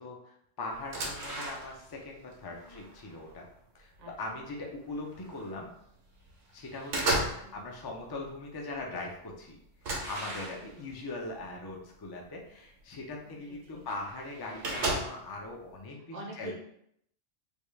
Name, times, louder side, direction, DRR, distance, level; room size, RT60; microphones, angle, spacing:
voice 1, 0.0-3.4 3.7-3.9 4.2-5.7 6.5-9.6 10.1-16.5, left 2 dB, 35° left, 0 dB, 0.3 m, -41 dB
sound 1, 0.7-2.0 2.3-3.5 4.1-4.3 4.6-5.5 6.0-6.3 6.6-7.5 7.8-8.3 8.8-8.9 9.1-9.2 9.8-10.9 11.7-11.8 12.3-12.4 13.5-13.6 13.8-13.9 14.1-15.4, right 2 dB, 75° right, 1.1 m, -34 dB
voice 2, 2.5-2.9 4.0-4.4 7.2-7.6 10.5-10.9 13.2-13.9 16.1-16.5, right 1 dB, 45° right, -1 dB, 0.6 m, -47 dB
3.5 x 2.3 x 3.2 m, 0.71 s
omnidirectional pair, 1.2 m